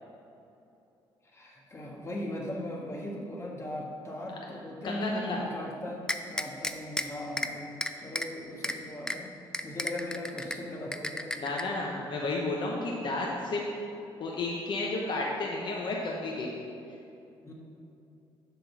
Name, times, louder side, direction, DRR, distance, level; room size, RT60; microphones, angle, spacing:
voice 1, 1.3-6.0 6.3-9.3 9.6-11.3 17.4-17.5, left 1 dB, 30° left, -2 dB, 1.5 m, -38 dB
voice 2, 4.8-5.4 11.4-13.6 14.2-16.5, left 2 dB, 55° left, -2 dB, 0.9 m, -32 dB
sound 1, 6.1-7.0 7.4-7.5 7.8-8.3 8.6-8.7 9.1-9.2 9.5-10.6 10.9-11.6, left 1 dB, 5° left, 0.4 m, -32 dB
7.6 x 3.8 x 6.0 m, 2.7 s
cardioid pair, 90°, 10 cm